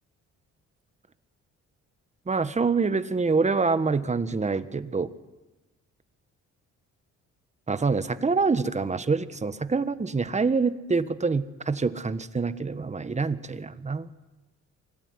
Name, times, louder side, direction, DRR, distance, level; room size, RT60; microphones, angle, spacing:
voice 1, 2.3-5.1 7.7-14.1, right 4 dB, 25° right, 12 dB, 1.4 m, -26 dB
24.5 x 18.5 x 9.8 m, 1.1 s
cardioid pair, 90°, 30 cm